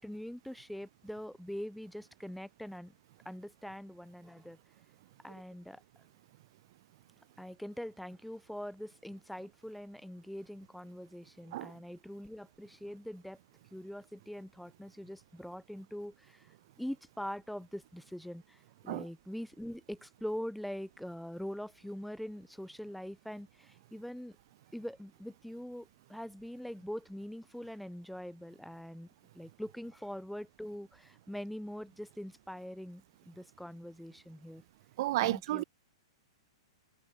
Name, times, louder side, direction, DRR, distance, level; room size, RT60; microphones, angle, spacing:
voice 1, 0.0-2.9 3.2-4.6 5.2-5.8 7.4-13.4 13.7-24.4 24.7-29.1 29.3-34.6 35.2-35.6, equal, ahead, 1.3 m, -43 dB
voice 2, 35.0-35.6, right 17 dB, 50° right, 0.8 m, -32 dB
hypercardioid pair, 150°, 3 cm